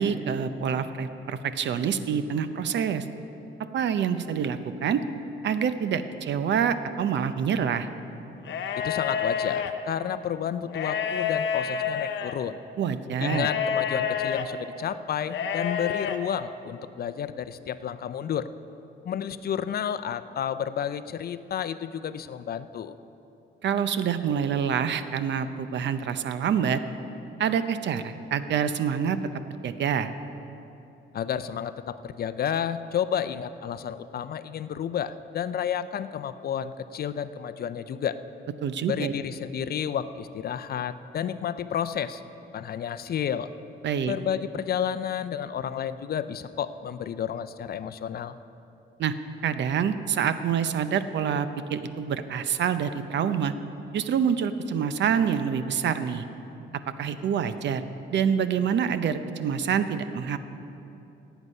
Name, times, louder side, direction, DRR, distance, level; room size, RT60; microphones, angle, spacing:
voice 1, 0.0-3.0 3.7-5.0 5.4-7.9 12.8-13.5 23.6-26.8 27.4-29.2 29.6-30.1 38.6-39.1 43.8-44.1 49.0-49.1 49.4-53.5 53.9-56.2 57.0-57.8 58.1-60.4, right 7 dB, 65° right, 11 dB, 0.7 m, -26 dB
sound 1, 8.4-9.7 10.7-12.3 13.2-14.5 15.3-16.2, left 7 dB, 65° left, 0.9 m, -28 dB
voice 2, 8.8-12.6 13.2-18.5 19.0-22.9 31.1-38.2 38.9-42.2 42.5-43.5 44.1-48.4, left 8 dB, 50° left, 13 dB, 0.5 m, -31 dB
17.5 x 8.2 x 5.4 m, 2.9 s
cardioid pair, 90°, 20 cm